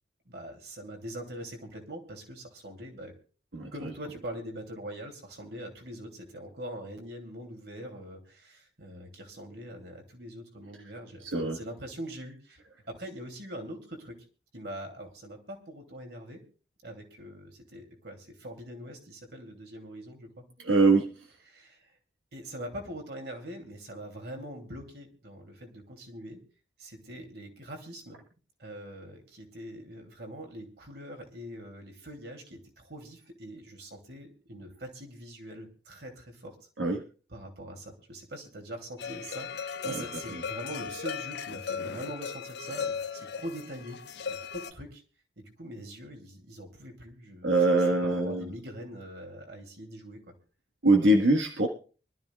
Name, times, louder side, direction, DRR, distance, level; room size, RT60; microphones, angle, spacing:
voice 1, 0.2-3.1 3.7-12.6 12.9-14.2 14.5-16.4 16.8-20.4 21.5-22.0 22.3-26.4 26.8-28.2 28.6-36.5 37.3-44.0 44.3-45.0 45.4-50.2, equal, 60° right, 3 dB, 2.9 m, -43 dB
voice 2, 20.6-21.1 36.8-37.0 47.4-48.5 50.8-51.7, right 2 dB, 85° right, 3 dB, 1.5 m, -22 dB
sound 1, 39.0-44.7, left 6 dB, 65° left, 0.7 m, -37 dB
24.5 x 13.0 x 2.4 m, 0.38 s
head